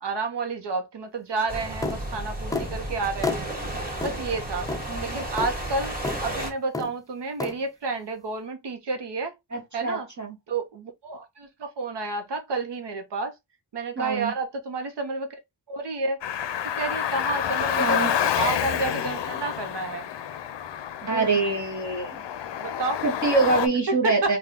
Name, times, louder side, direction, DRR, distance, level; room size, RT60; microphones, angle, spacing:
voice 1, 0.0-3.5 4.0-4.7 5.0-5.9 6.2-9.3 9.7-10.1 10.5-13.3 13.7-15.4 15.7-16.2 16.7-20.1 21.0-21.6 22.6-23.0 23.9-24.3, right 3 dB, 75° right, 0.8 m, -30 dB
sound 1, 1.5-6.5, right 1 dB, 20° right, 1.9 m, -33 dB
sound 2, 1.8-2.0 2.5-2.7 3.2-3.4 4.0-4.2 4.7-4.9 5.4-5.5 6.0-6.2 6.7-6.9 7.4-7.6, left 3 dB, 10° left, 0.3 m, -29 dB
voice 2, 9.5-10.3 14.0-14.3 17.8-18.1 21.1-22.2 23.0-24.4, right 3 dB, 45° right, 1.1 m, -25 dB
Car, 16.2-23.7, left 9 dB, 80° left, 0.6 m, -28 dB
3.6 x 2.3 x 3.5 m
wide cardioid pair, 95°, 42 cm